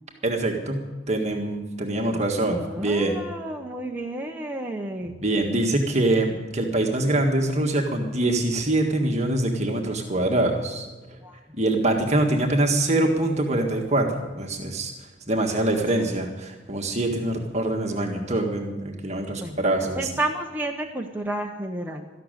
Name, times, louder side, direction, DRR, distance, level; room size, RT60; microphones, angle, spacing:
voice 1, 0.2-3.1 5.2-10.9 11.6-14.9 15.3-20.0, right 1 dB, 35° right, 2 dB, 1.7 m, -24 dB
voice 2, 2.5-5.2 11.2-11.3 15.9-16.0 19.4-19.6 20.0-22.1, right 1 dB, 10° right, 1 dB, 0.9 m, -31 dB
13.5 x 12.0 x 9.1 m, 1.3 s
head